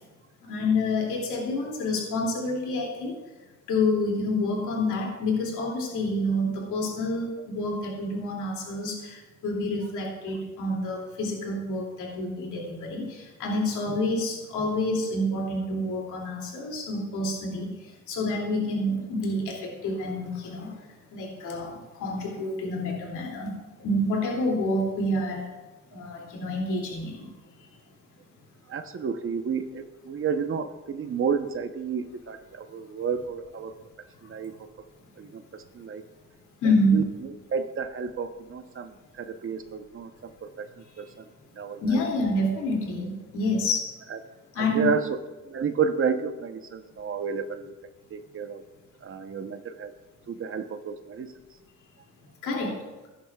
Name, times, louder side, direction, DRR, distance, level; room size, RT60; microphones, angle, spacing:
voice 1, 0.5-3.1 3.7-17.7 18.1-20.7 21.1-23.5 23.8-25.4 25.9-27.3 36.6-37.0 41.8-43.8 44.6-44.9 52.4-52.7, left 1 dB, 85° left, -1 dB, 2.6 m, -28 dB
voice 2, 28.7-33.7 34.2-34.5 35.2-35.4 35.7-36.0 36.6-40.7 41.0-41.3 41.6-42.0 44.1-44.2 44.6-45.0 45.5-47.7 48.1-48.6 49.0-49.9 50.3-51.3, right 6 dB, 45° right, 8 dB, 0.9 m, -31 dB
15.0 x 11.0 x 2.4 m, 1.2 s
cardioid pair, 90°, 30 cm